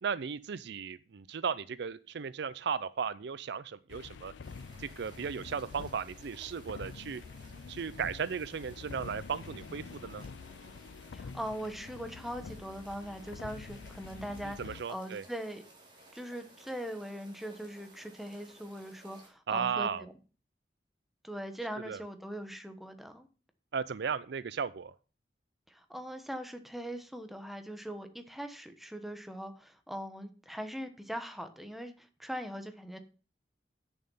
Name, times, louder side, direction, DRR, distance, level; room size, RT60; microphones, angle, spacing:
voice 1, 0.0-4.3 4.8-7.2 7.7-10.2 14.4-15.2 19.5-20.1 21.9-22.0 23.7-24.9, right 6 dB, 70° right, 17 dB, 0.5 m, -35 dB
sound 1, 3.9-14.8, left 5 dB, 85° left, 0.4 m, -47 dB
sound 2, 4.4-19.3, right 2 dB, 30° right, 3.1 m, -58 dB
voice 2, 11.1-14.6 14.9-15.6 16.1-20.1 21.2-23.3 25.7-33.0, equal, ahead, 7 dB, 1.2 m, -41 dB
8.8 x 7.1 x 5.5 m, 0.35 s
head